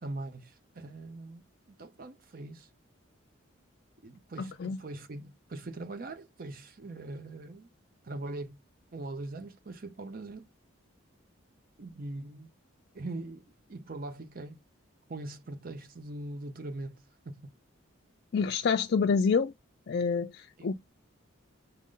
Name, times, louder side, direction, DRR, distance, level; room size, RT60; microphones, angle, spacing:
voice 1, 0.0-2.7 4.0-7.7 8.0-8.6 8.9-10.5 11.8-12.5 12.9-14.6 15.1-17.5 20.6-20.7, right 2 dB, 45° right, 0.6 m, -41 dB
voice 2, 4.4-4.8 18.3-19.5 19.9-20.7, left 5 dB, 50° left, 0.3 m, -27 dB
6.3 x 2.1 x 3.7 m
head